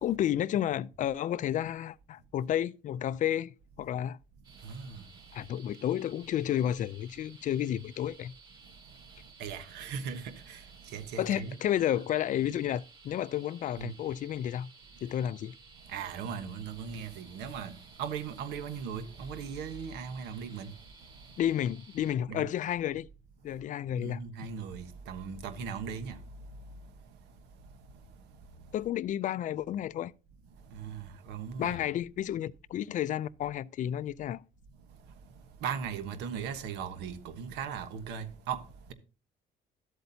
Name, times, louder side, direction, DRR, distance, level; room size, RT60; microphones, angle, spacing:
voice 1, 0.0-4.2 5.3-8.3 11.2-14.7 15.0-15.5 21.4-23.1 23.4-24.2 28.7-30.1 31.6-34.4, left 11 dB, 50° left, 0.4 m, -31 dB
sound 1, 4.4-22.1, right 4 dB, 25° right, 3.4 m, -56 dB
voice 2, 4.6-5.0 9.4-10.6 10.9-11.6 13.8-13.9 15.9-17.7 18.0-20.7 22.3-22.5 24.0-26.1 30.7-31.8 35.6-38.6, right 7 dB, 90° right, 1.2 m, -38 dB
12.5 x 8.0 x 2.8 m
cardioid pair, 110°, 17 cm